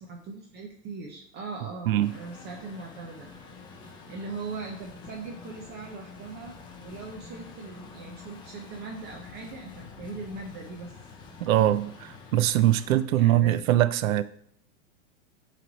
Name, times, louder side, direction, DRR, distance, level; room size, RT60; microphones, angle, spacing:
voice 1, 0.0-3.3 3.8-10.9 13.1-13.5, right 4 dB, 25° right, 0.7 m, -40 dB
Truck, 2.0-13.0, left 4 dB, 10° left, 0.4 m, -47 dB
voice 2, 11.4-14.2, right 13 dB, 80° right, 0.6 m, -22 dB
7.7 x 3.3 x 4.0 m
supercardioid pair, 140°, 40 cm